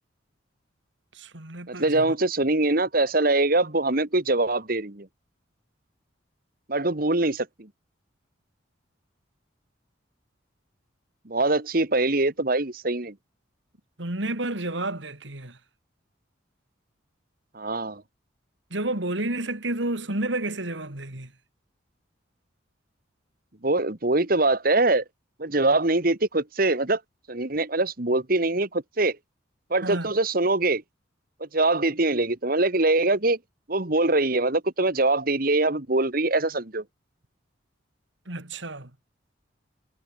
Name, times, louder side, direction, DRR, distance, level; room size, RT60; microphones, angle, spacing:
voice 1, 1.1-2.0 14.0-15.6 18.7-21.3 29.8-30.1 38.3-38.9, right 2 dB, 70° right, 3.2 m, -30 dB
voice 2, 1.7-5.1 6.7-7.7 11.3-13.1 17.5-18.0 23.6-25.0 25.4-27.0 27.3-29.2 29.7-30.8 31.4-33.4 33.7-36.8, right 2 dB, 50° right, 1.8 m, -23 dB
head